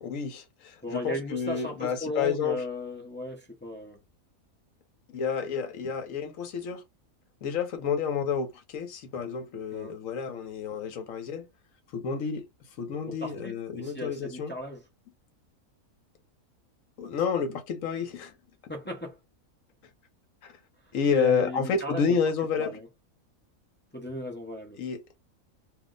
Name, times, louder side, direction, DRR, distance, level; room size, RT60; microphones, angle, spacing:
voice 1, 0.0-2.6 5.1-6.8 7.4-11.5 11.9-12.4 12.8-14.5 17.0-18.3 20.9-22.8 24.8-25.0, left 6 dB, 70° left, 1.1 m, -30 dB
voice 2, 0.8-4.0 9.7-10.0 13.1-14.8 18.7-19.2 21.1-22.2 22.6-22.9 23.9-24.8, equal, 15° left, 0.3 m, -36 dB
2.7 x 2.0 x 3.7 m
omnidirectional pair, 1.5 m